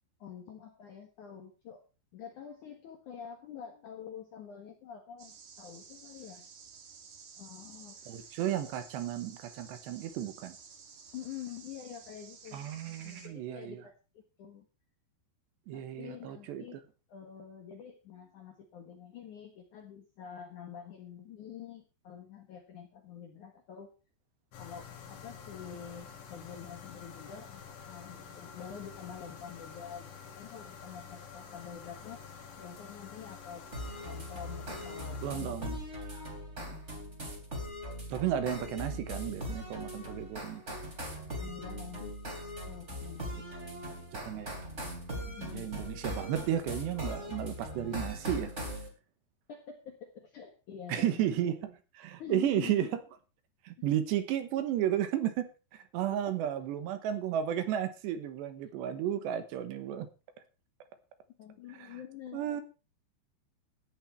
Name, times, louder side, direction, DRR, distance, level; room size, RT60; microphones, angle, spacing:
voice 1, 0.2-1.8 2.1-6.4 7.4-8.0 11.1-12.7 13.0-14.7 15.7-16.8 17.1-23.9 24.6-32.2 32.6-33.7 34.0-35.8 36.1-36.8 41.3-42.2 42.7-43.5 45.4-45.7 49.5-51.2 52.2-52.9 56.3-56.4 61.4-62.6, left 8 dB, 65° left, 4 dB, 2.1 m, -47 dB
sound 1, 5.2-13.3, right 6 dB, 50° right, 3.0 m, -52 dB
voice 2, 8.1-10.6 12.5-13.8 15.7-16.6 35.2-35.8 38.1-40.8 44.1-44.5 45.1-48.5 50.9-52.9 53.6-60.1 61.7-61.9 62.3-62.6, right 11 dB, 75° right, 11 dB, 3.1 m, -33 dB
sound 2, 24.5-35.4, left 6 dB, 80° left, 5.1 m, -49 dB
sound 3, 33.7-48.9, equal, 15° right, 2.9 m, -40 dB
14.5 x 10.0 x 4.5 m, 0.33 s
omnidirectional pair, 5.4 m